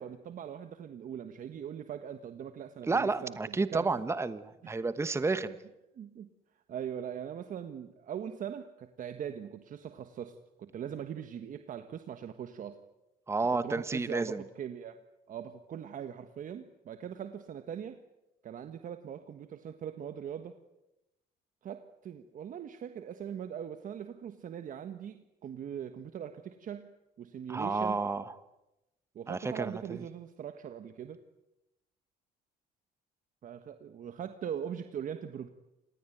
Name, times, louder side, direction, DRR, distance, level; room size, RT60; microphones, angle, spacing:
voice 1, 0.0-3.9 6.0-6.3 6.7-12.8 13.6-18.0 18.4-20.6 21.6-26.9 27.2-28.0 29.1-31.2 33.4-35.5, right 9 dB, 50° right, 9 dB, 1.4 m, -41 dB
voice 2, 2.9-5.6 13.3-14.4 27.5-28.3 29.3-29.8, right 3 dB, 15° right, 13 dB, 1.2 m, -31 dB
27.0 x 20.0 x 9.3 m, 0.94 s
cardioid pair, 110°, 17 cm